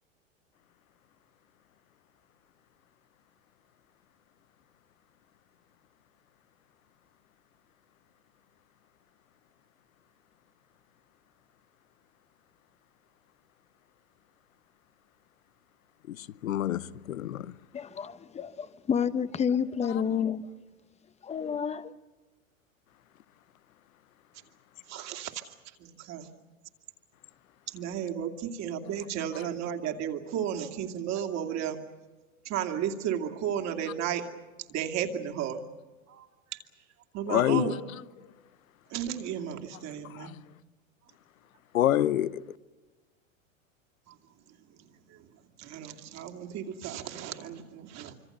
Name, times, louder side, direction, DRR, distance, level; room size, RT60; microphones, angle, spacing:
voice 1, 16.1-17.5 19.9-20.0 37.3-37.7 40.0-40.4 41.7-42.4, left 12 dB, 80° left, 0.8 m, -27 dB
voice 2, 17.7-20.5 21.2-21.9, left 7 dB, 15° left, 0.8 m, -30 dB
voice 3, 24.9-25.5 25.8-26.3 27.7-31.8 32.4-34.2 34.7-35.6 36.1-36.6 37.1-37.7 38.9-40.3 44.1-44.2 44.7-45.2 45.6-48.1, right 9 dB, 40° right, 2.6 m, -34 dB
25.5 x 25.0 x 6.8 m
hypercardioid pair, 110°, 40 cm